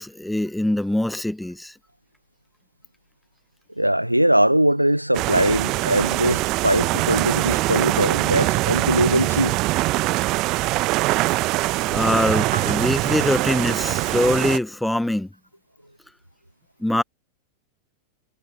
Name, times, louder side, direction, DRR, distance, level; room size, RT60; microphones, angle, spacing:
voice 1, 0.0-1.7 11.8-15.3 16.8-17.0, left 1 dB, 5° left, 1.1 m, -23 dB
voice 2, 3.8-9.6 12.5-12.7, right 1 dB, 90° right, 0.8 m, -21 dB
sound 1, 5.1-14.6, right 20 dB, 40° right, 1.0 m, -23 dB
figure-of-eight pair, 90°, 0 cm